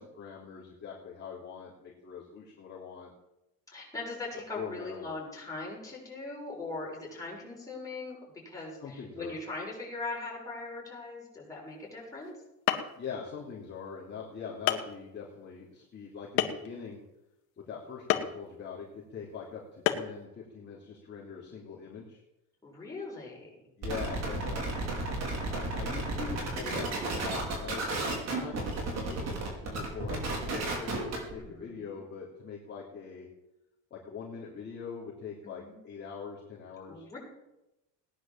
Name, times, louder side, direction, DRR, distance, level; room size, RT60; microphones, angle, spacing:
voice 1, 0.0-3.1 4.5-5.1 8.8-9.4 13.0-17.0 17.6-22.2 23.8-24.8 25.5-33.3 33.9-37.0, left 6 dB, 30° left, -5 dB, 3.3 m, -43 dB
voice 2, 3.7-8.2 8.4-12.3 22.6-23.6 24.5-25.1 31.4-32.0 35.4-35.8 36.9-37.2, left 3 dB, 10° left, -4 dB, 7.0 m, -40 dB
sound 1, 12.3-12.4 12.7-13.1 13.9-14.0 14.7-14.9 16.4-16.8 18.1-18.4 19.9-20.2, left 13 dB, 80° left, 1.9 m, -28 dB
sound 2, 23.8-31.3, right 2 dB, 45° right, 5.3 m, -33 dB
18.0 x 10.5 x 7.5 m, 0.92 s
cardioid pair, 150°, 36 cm